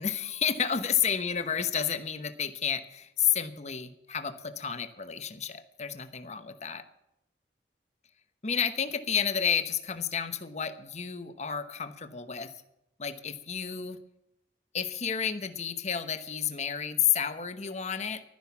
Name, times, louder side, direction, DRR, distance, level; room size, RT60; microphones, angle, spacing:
voice 1, 0.0-6.8 8.4-12.5 13.0-14.0 14.7-18.2, left 8 dB, 40° left, 10 dB, 1.0 m, -31 dB
12.5 x 10.5 x 7.0 m, 0.85 s
head